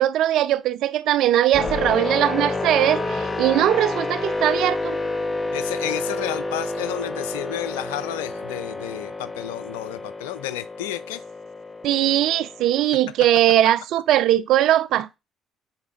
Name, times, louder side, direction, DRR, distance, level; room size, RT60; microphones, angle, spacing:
voice 1, 0.0-5.0 11.8-15.2, right 12 dB, 70° right, 0.4 m, -20 dB
sound 1, 1.5-12.9, left 2 dB, 25° left, 1.1 m, -29 dB
voice 2, 5.5-11.2, left 14 dB, 85° left, 0.4 m, -31 dB
9.6 x 4.2 x 2.4 m
hypercardioid pair, 55°, 0 cm